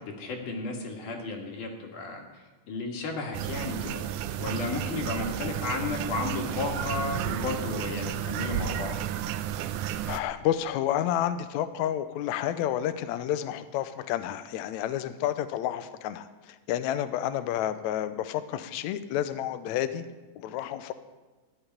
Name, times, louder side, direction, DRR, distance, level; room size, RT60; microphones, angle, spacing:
voice 1, 0.2-4.0 4.4-9.0, left 3 dB, 65° left, 2 dB, 3.2 m, -33 dB
sound 1, 3.3-10.2, right 10 dB, 85° right, 1.8 m, -32 dB
voice 2, 10.1-20.0 20.4-20.9, left 11 dB, 90° left, 11 dB, 1.6 m, -30 dB
14.0 x 6.0 x 9.8 m, 1.2 s
omnidirectional pair, 4.0 m